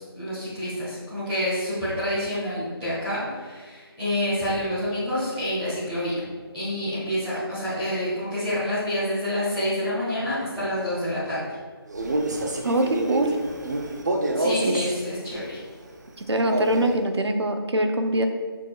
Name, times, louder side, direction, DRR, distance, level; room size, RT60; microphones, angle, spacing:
voice 1, 0.0-6.3 6.5-11.4 14.3-15.6, left 1 dB, 5° right, -14 dB, 1.8 m, -28 dB
Male speech man speaking, 11.9-15.0 16.4-17.0, right 2 dB, 45° right, 0.7 m, -27 dB
voice 2, 12.6-13.4 14.6-14.8 16.3-18.3, right 1 dB, 80° right, 6 dB, 0.8 m, -23 dB
6.6 x 6.1 x 2.4 m, 1.5 s
figure-of-eight pair, 165°, 14 cm